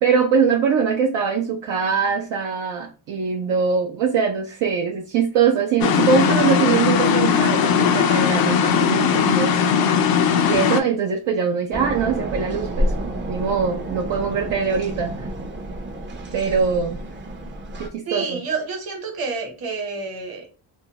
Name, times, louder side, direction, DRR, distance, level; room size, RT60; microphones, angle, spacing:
voice 1, 0.0-9.7 10.4-12.9 13.3-15.3 16.3-17.0 17.8-18.4, right 6 dB, 70° right, 0.6 m, -22 dB
sound 1, 5.8-10.8, left 7 dB, 50° left, 0.5 m, -18 dB
sound 2, 11.7-17.9, right 1 dB, 25° right, 0.6 m, -29 dB
voice 2, 18.1-20.5, right 4 dB, 50° right, 1.2 m, -29 dB
2.5 x 2.1 x 2.8 m
supercardioid pair, 80°, 48 cm